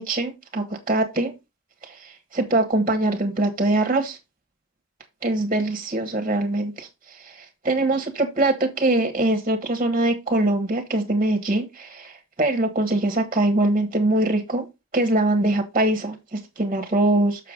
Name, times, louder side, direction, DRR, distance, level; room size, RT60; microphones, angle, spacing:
voice 1, 0.0-1.3 1.8-4.2 5.2-14.7 14.9-17.5, right 2 dB, 25° right, 1.4 m, -23 dB
6.8 x 6.6 x 3.8 m
head